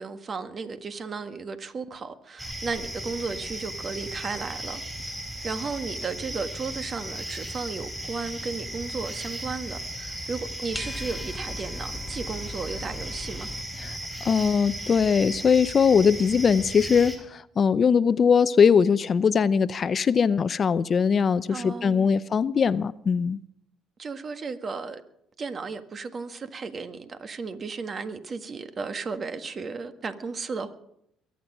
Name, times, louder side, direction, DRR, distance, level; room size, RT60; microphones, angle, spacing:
voice 1, 0.0-4.8 5.4-13.5 21.5-22.1 24.0-25.0 25.4-30.8, right 4 dB, 40° right, 1.6 m, -34 dB
sound 1, 2.4-17.2, right 1 dB, 10° right, 4.9 m, -36 dB
sound 2, 10.7-13.6, left 2 dB, 10° left, 1.2 m, -39 dB
voice 2, 14.2-23.4, left 6 dB, 45° left, 0.6 m, -21 dB
22.5 x 9.5 x 6.2 m
supercardioid pair, 70°, 0 cm